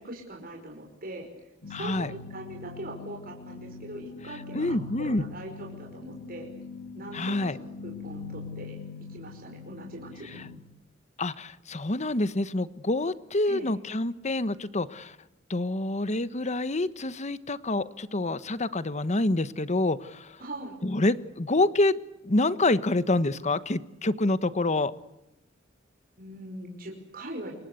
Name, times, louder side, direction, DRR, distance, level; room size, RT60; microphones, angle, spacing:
voice 1, 0.0-6.5 6.9-8.8 9.1-10.4 13.5-13.8 20.4-20.8 26.2-27.6, right 1 dB, 50° right, 1 dB, 5.4 m, -41 dB
sound 1, 1.6-10.6, left 5 dB, 65° left, 2.2 m, -42 dB
voice 2, 1.7-2.1 4.5-5.2 7.1-7.6 11.2-15.2 15.5-20.4 20.8-22.0 22.2-24.9, left 2 dB, 35° left, 15 dB, 1.1 m, -27 dB
28.5 x 24.0 x 8.3 m, 0.92 s
head